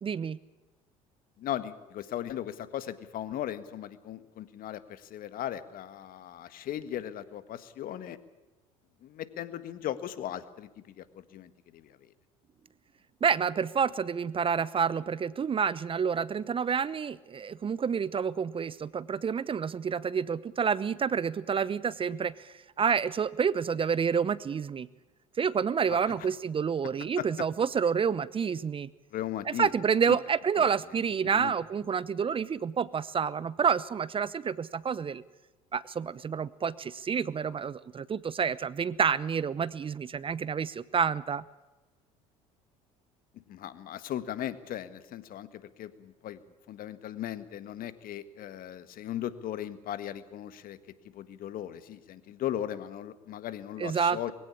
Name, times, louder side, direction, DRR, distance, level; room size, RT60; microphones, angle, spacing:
voice 1, 0.0-0.4 13.2-22.3 22.8-24.9 25.4-28.9 29.5-35.2 35.7-41.4 53.8-54.3, right 6 dB, 30° right, 19 dB, 0.8 m, -29 dB
voice 2, 1.4-8.2 9.0-10.7 11.0-11.1 11.3-11.9 25.9-26.2 27.2-27.3 29.1-29.7 30.1-30.2 30.6-30.7 31.2-31.5 43.5-46.4 46.7-50.8 51.1-54.3, left 11 dB, 55° left, 13 dB, 1.6 m, -37 dB
22.0 x 16.5 x 8.6 m, 1.2 s
hypercardioid pair, 70°, 18 cm